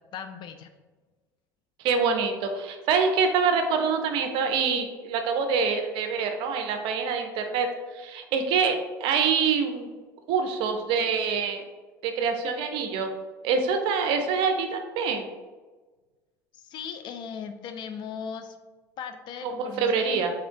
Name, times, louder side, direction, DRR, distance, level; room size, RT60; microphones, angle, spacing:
voice 1, 0.1-0.7 16.5-18.6 19.0-20.2, left 7 dB, 50° left, 7 dB, 0.4 m, -38 dB
voice 2, 1.8-7.7 7.9-9.9 10.3-11.6 12.0-13.1 13.4-15.3 19.4-20.3, right 5 dB, 55° right, 6 dB, 0.5 m, -25 dB
3.5 x 3.3 x 2.7 m, 1.3 s
hypercardioid pair, 70°, 10 cm